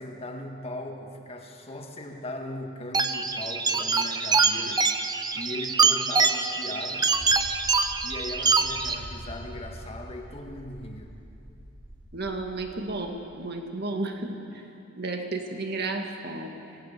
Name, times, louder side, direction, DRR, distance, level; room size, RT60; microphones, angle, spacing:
voice 1, 0.0-4.8 5.3-7.2 8.0-11.1, left 1 dB, 30° left, 2 dB, 1.9 m, -38 dB
sound 1, 2.9-9.0, right 4 dB, 20° right, 0.7 m, -24 dB
sound 2, 7.1-12.9, equal, 75° right, 4.5 m, -44 dB
voice 2, 12.1-14.4 15.0-16.5, right 2 dB, 50° right, 3 dB, 2.0 m, -32 dB
25.5 x 17.5 x 6.9 m, 2.7 s
head